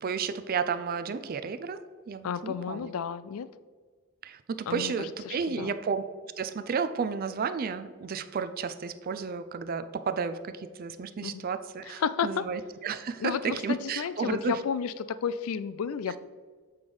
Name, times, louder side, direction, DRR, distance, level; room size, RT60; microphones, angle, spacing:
voice 1, 0.0-1.8 2.1-2.9 4.2-6.0 6.4-14.6, right 5 dB, 40° right, 11 dB, 0.4 m, -32 dB
voice 2, 2.2-3.5 4.7-5.7 11.2-11.5 11.8-12.4 13.2-16.2, left 7 dB, 70° left, 15 dB, 0.4 m, -32 dB
7.9 x 3.3 x 5.3 m, 1.5 s
head